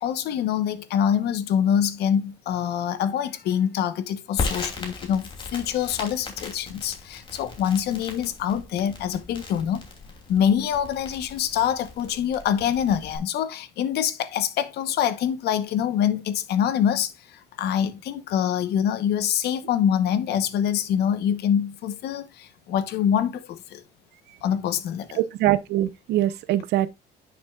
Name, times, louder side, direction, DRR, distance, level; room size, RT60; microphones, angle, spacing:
voice 1, 0.0-9.8 10.3-23.8 24.4-25.2, left 9 dB, 70° left, 1.0 m, -25 dB
Crackle, 4.4-13.2, left 3 dB, 30° left, 2.8 m, -37 dB
voice 2, 25.2-26.9, right 14 dB, 75° right, 0.8 m, -23 dB
10.5 x 6.1 x 2.4 m
cardioid pair, 130°, 18 cm